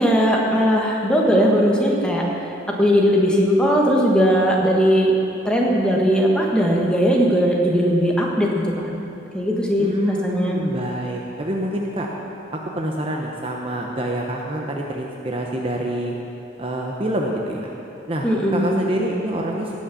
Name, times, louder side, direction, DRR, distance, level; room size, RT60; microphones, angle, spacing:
voice 1, 0.0-2.2 2.8-5.1 5.4-8.5 8.8-9.0 9.3-10.6 18.2-18.7, equal, 5° left, -2 dB, 1.4 m, -18 dB
voice 2, 9.8-12.1 12.5-16.1 16.6-17.7 18.1-19.8, right 1 dB, 30° right, 0 dB, 0.8 m, -26 dB
17.5 x 6.4 x 7.1 m, 2.8 s
head